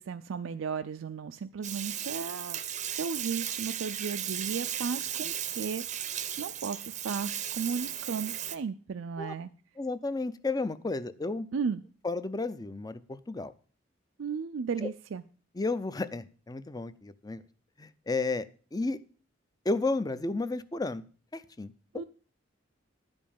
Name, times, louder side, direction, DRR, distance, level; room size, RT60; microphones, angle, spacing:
voice 1, 0.0-2.6 3.0-9.5 11.5-11.8 14.2-15.2 21.9-22.0, right 5 dB, 80° right, 9 dB, 0.4 m, -35 dB
Bathtub (filling or washing), 1.6-8.6, right 10 dB, 35° right, 0.6 m, -36 dB
voice 2, 9.8-11.5 12.0-13.5 14.8-14.9 15.6-17.4 17.8-19.0 19.7-21.0 21.3-22.0, left 3 dB, 20° left, 15 dB, 0.5 m, -32 dB
11.0 x 5.3 x 7.1 m, 0.40 s
head